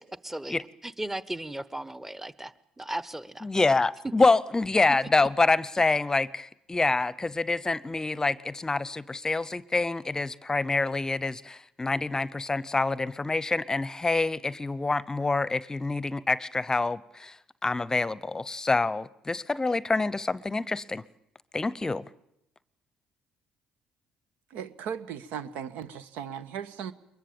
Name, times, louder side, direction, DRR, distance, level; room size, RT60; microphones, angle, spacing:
voice 1, 0.2-3.5, right 1 dB, 10° right, 1.1 m, -36 dB
voice 2, 3.4-21.0 21.5-22.1, left 3 dB, 20° left, 0.8 m, -26 dB
voice 3, 24.5-26.9, right 8 dB, 70° right, 1.3 m, -37 dB
23.0 x 21.5 x 8.7 m
hypercardioid pair, 60°, 3 cm